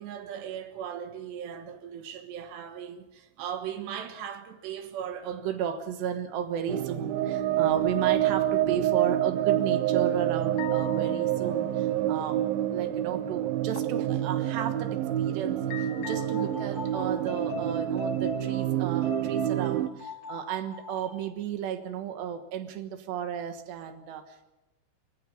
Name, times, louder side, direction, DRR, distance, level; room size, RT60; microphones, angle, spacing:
voice 1, 0.0-24.5, right 8 dB, 70° right, 8 dB, 3.3 m, -34 dB
sound 1, 6.7-19.9, right 12 dB, 90° right, 2.0 m, -27 dB
sound 2, 10.6-12.0 13.8-14.1 14.7-14.9 15.7-16.8, left 13 dB, 80° left, 3.6 m, -42 dB
sound 3, 15.9-21.3, left 2 dB, 30° left, 1.7 m, -39 dB
27.0 x 15.0 x 7.0 m, 1.0 s
omnidirectional pair, 5.6 m